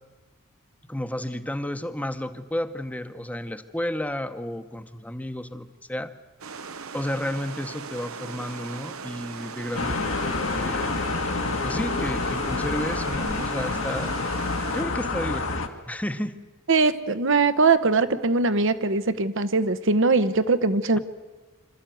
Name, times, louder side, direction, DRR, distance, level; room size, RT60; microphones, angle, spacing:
voice 1, 0.9-6.1 6.9-10.0 10.6-11.1 11.6-14.1 14.7-16.4, left 1 dB, 5° left, 10 dB, 1.0 m, -32 dB
sound 1, 6.4-14.8, right 5 dB, 90° right, 1.1 m, -39 dB
sound 2, 9.7-15.7, left 3 dB, 70° left, 1.7 m, -28 dB
voice 2, 16.7-21.0, right 3 dB, 65° right, 12 dB, 1.1 m, -21 dB
26.5 x 14.0 x 9.2 m, 1.3 s
head